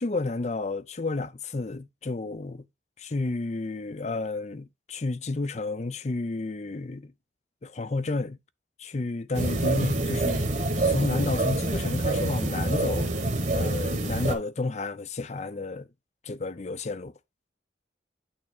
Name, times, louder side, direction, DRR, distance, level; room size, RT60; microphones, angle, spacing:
voice 1, 0.0-2.6 3.1-7.1 7.6-8.4 8.8-10.5 10.9-13.1 13.5-15.9 16.2-17.1, left 3 dB, 35° left, 0.5 m, -31 dB
sound 1, 9.3-14.4, right 2 dB, 40° right, 1.2 m, -26 dB
8.7 x 3.4 x 4.3 m
head